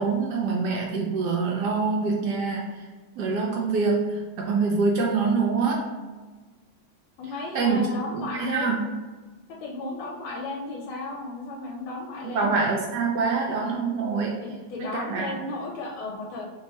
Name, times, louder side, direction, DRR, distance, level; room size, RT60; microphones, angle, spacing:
voice 1, 0.0-2.9 3.2-5.9 7.2-8.8 12.2-14.4 14.8-15.3, right 4 dB, 80° right, -1 dB, 0.9 m, -25 dB
voice 2, 7.2-8.7 9.6-12.5 14.4-16.4, left 3 dB, 85° left, -1 dB, 1.5 m, -34 dB
3.5 x 2.3 x 4.1 m, 1.3 s
omnidirectional pair, 2.3 m